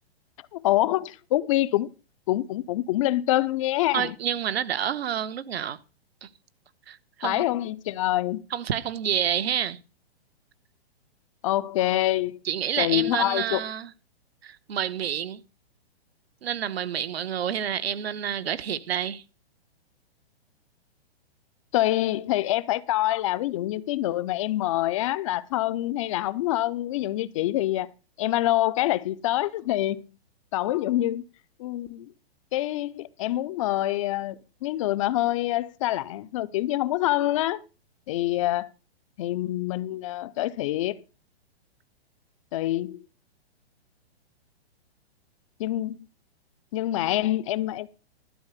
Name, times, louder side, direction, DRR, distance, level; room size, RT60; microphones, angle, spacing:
voice 1, 0.5-1.9 2.3-4.1 7.2-8.4 11.4-12.4 12.8-13.6 21.7-27.9 28.2-30.0 30.5-31.2 31.6-32.1 32.5-37.6 38.1-38.7 39.2-41.0 42.5-43.0 45.6-46.0 46.7-47.9, left 15 dB, 30° left, 0.5 m, -26 dB
voice 2, 3.9-5.8 6.2-6.3 6.9-7.4 8.5-9.8 12.4-13.9 14.4-15.4 16.4-19.2, right 9 dB, 70° right, 1.1 m, -28 dB
12.5 x 4.7 x 8.2 m
hypercardioid pair, 135°, 32 cm